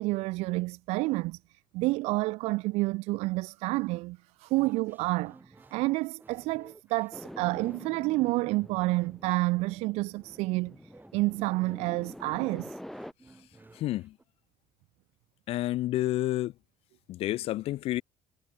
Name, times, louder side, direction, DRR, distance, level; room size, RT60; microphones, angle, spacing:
voice 1, 0.0-12.8, right 22 dB, 75° right, 0.4 m, -29 dB
sound 1, 4.5-14.2, right 3 dB, 15° right, 2.9 m, -57 dB
sound 2, 7.1-13.1, equal, 5° left, 2.3 m, -46 dB
voice 2, 13.7-14.2 15.5-16.5 17.1-18.0, left 15 dB, 65° left, 0.5 m, -29 dB
supercardioid pair, 75°, 11 cm